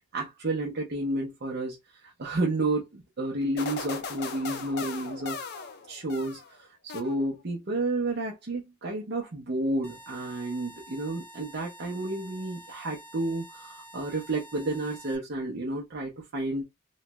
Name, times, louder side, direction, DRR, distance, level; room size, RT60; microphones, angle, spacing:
voice 1, 0.1-5.4 5.9-16.6, right 2 dB, 50° right, 0.6 m, -31 dB
sound 1, 3.6-6.5 6.9-7.5, left 5 dB, 55° left, 0.6 m, -38 dB
sound 2, 9.8-15.2, right 1 dB, 10° left, 0.6 m, -49 dB
3.1 x 2.2 x 3.0 m
head